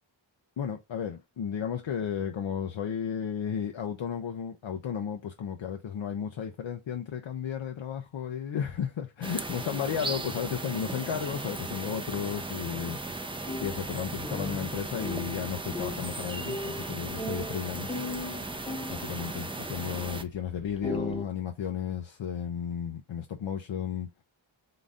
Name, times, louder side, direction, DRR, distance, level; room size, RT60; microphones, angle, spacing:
voice 1, 0.6-18.0 18.9-24.1, left 8 dB, 70° left, 0.6 m, -34 dB
sound 1, 9.2-20.2, right 2 dB, 10° right, 0.5 m, -37 dB
sound 2, 13.4-19.2 20.1-20.2 20.6-21.2, left 1 dB, 10° left, 0.8 m, -38 dB
3.8 x 2.6 x 3.5 m
wide cardioid pair, 75°, 48 cm